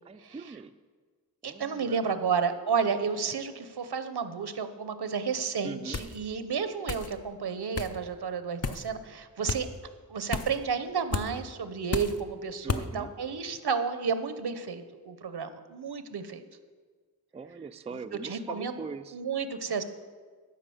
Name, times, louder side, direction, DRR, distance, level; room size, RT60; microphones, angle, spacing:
voice 1, 0.0-0.7 1.4-2.1 5.6-6.1 12.6-13.1 17.3-19.2, right 4 dB, 20° right, 10 dB, 0.3 m, -41 dB
voice 2, 1.4-9.7 10.1-16.4 18.2-18.8 19.1-19.8, right 6 dB, 85° right, 10 dB, 0.7 m, -31 dB
sound 1, 5.9-6.2 6.9-7.1 7.7-7.9 8.6-8.9 9.5-9.6 10.3-10.6 11.1-11.3 11.9-12.2 12.7-12.9, left 4 dB, 40° left, 0.6 m, -32 dB
12.5 x 4.8 x 7.0 m, 1.5 s
wide cardioid pair, 55°, 38 cm